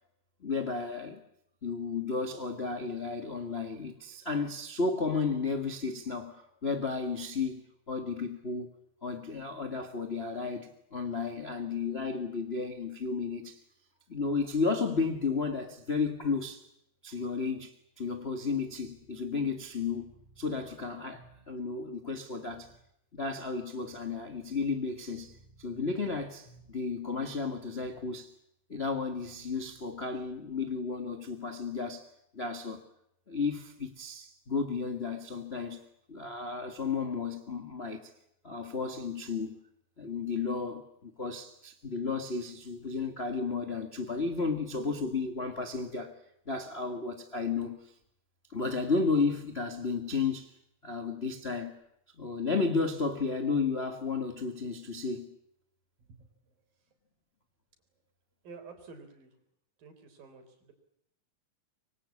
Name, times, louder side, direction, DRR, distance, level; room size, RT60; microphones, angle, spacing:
voice 1, 0.4-1.2 1.6-7.6 7.9-8.7 9.0-13.6 14.1-16.6 17.0-20.1 20.4-22.7 23.1-25.3 25.6-28.3 28.7-32.1 32.3-32.8 33.3-35.8 36.1-38.1 38.4-39.6 40.0-46.2 46.5-47.9 48.5-50.5 50.8-51.8 52.2-55.4, left 4 dB, 65° left, 0.6 m, -33 dB
sound 1, 18.6-21.7 22.5-22.9 23.8-27.0 27.8-28.2 29.1-30.4, right 1 dB, 30° right, 8.6 m, -60 dB
voice 2, 56.0-56.9 58.4-59.4 59.8-60.7, right 4 dB, 70° right, 5.6 m, -51 dB
25.0 x 23.5 x 8.5 m
omnidirectional pair, 4.2 m